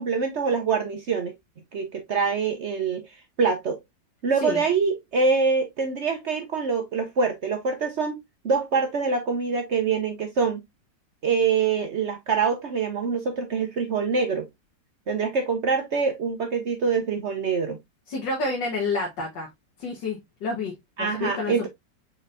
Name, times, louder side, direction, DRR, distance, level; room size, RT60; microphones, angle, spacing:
voice 1, 0.0-1.3 1.7-3.1 3.4-3.8 4.2-8.2 8.4-10.6 11.2-14.5 15.1-17.8 21.0-21.7, right 5 dB, 60° right, 0.8 m, -25 dB
voice 2, 18.1-19.5 19.8-21.7, left 3 dB, 80° left, 1.9 m, -29 dB
4.9 x 4.2 x 2.5 m
omnidirectional pair, 1.9 m